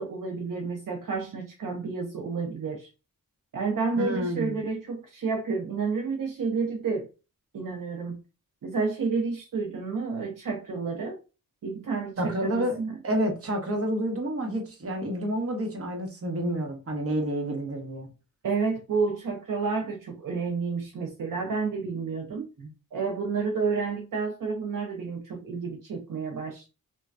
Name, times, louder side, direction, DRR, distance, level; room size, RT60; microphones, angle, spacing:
voice 1, 0.0-2.9 3.5-7.1 7.5-8.2 8.6-11.2 11.6-13.0 18.4-22.5 22.9-26.7, right 4 dB, 65° right, 0.6 m, -30 dB
voice 2, 4.0-4.6 12.2-18.1 22.6-22.7, equal, 40° right, 1.0 m, -29 dB
3.1 x 2.2 x 2.4 m
wide cardioid pair, 90°, 34 cm